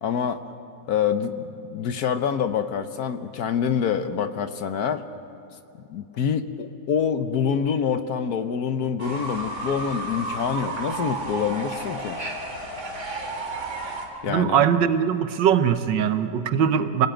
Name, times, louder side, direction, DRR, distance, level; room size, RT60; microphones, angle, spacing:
voice 1, 0.0-0.4 0.9-5.0 5.9-12.2 14.2-14.6, left 7 dB, 60° left, 10 dB, 1.3 m, -26 dB
Fowl / Bird, 9.0-14.1, right 2 dB, 40° right, 2.8 m, -32 dB
voice 2, 14.3-17.1, right 8 dB, 80° right, 10 dB, 1.6 m, -21 dB
25.5 x 18.5 x 9.0 m, 2.7 s
omnidirectional pair, 2.0 m